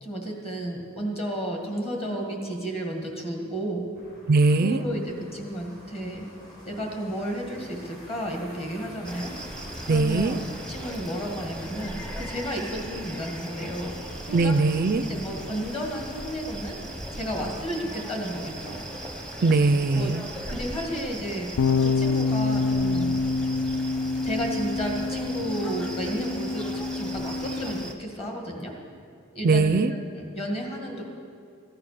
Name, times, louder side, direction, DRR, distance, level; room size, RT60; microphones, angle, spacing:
voice 1, 0.0-3.9 4.6-6.3 6.7-9.3 9.9-10.4 10.7-14.0 14.3-14.6 15.0-16.8 17.1-18.8 20.0-20.1 20.5-21.5 21.8-23.2 24.2-28.7 29.3-31.0, equal, 30° left, 1 dB, 2.0 m, -32 dB
sound 1, 3.9-16.2, equal, 45° left, 4.6 m, -48 dB
voice 2, 4.3-4.8 9.9-10.4 14.3-15.1 19.4-20.2 29.4-29.9, right 3 dB, 45° right, 12 dB, 0.4 m, -21 dB
sound 2, 9.0-27.9, right 1 dB, 5° left, 0.9 m, -38 dB
sound 3, 21.6-27.8, left 3 dB, 75° left, 0.3 m, -27 dB
14.5 x 9.7 x 6.8 m, 2.3 s
head